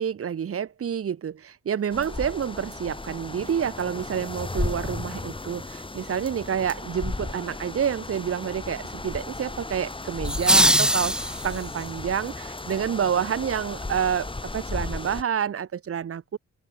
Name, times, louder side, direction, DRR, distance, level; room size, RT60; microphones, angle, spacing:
voice 1, 0.0-16.4, right 8 dB, 50° right, 2.3 m, -28 dB
sound 1, 1.9-15.2, left 2 dB, 15° left, 4.9 m, -35 dB
sound 2, 10.2-11.8, equal, 5° right, 1.5 m, -21 dB
open air
cardioid pair, 90°, 30 cm